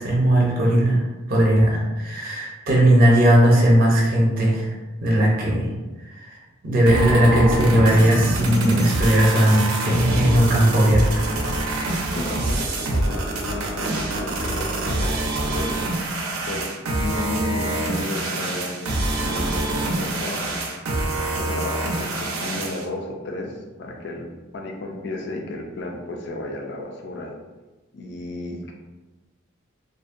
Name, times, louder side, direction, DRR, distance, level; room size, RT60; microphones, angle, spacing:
voice 1, 0.0-5.7 6.0-6.4 6.6-11.3, right 1 dB, 45° right, -3 dB, 0.5 m, -18 dB
sound 1, 6.9-22.9, right 2 dB, 90° right, 0.5 m, -25 dB
voice 2, 12.1-15.8 16.5-20.6 21.4-24.3 24.5-27.3 27.9-28.7, left 1 dB, 55° left, 1 dB, 0.3 m, -33 dB
2.6 x 2.1 x 2.5 m, 1.2 s
head